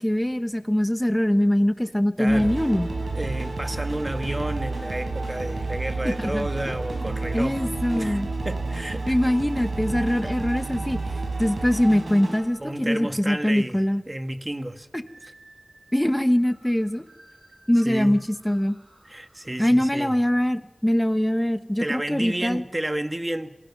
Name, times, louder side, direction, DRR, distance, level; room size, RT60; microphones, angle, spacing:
voice 1, 0.0-2.9 6.0-6.5 7.3-8.3 9.1-11.0 11.4-14.0 14.9-15.0 15.9-17.0 17.7-18.8 19.6-22.6, equal, 10° left, 1.2 m, -22 dB
voice 2, 2.2-2.5 3.1-7.7 7.9-9.2 12.6-14.9 17.8-18.2 19.0-20.2 21.8-23.5, right 1 dB, 25° right, 1.5 m, -31 dB
sound 1, 2.3-13.5 15.1-15.7 16.0-16.1 16.4-19.2, right 3 dB, 90° right, 4.7 m, -31 dB
27.5 x 23.5 x 6.0 m
wide cardioid pair, 50°, 0 cm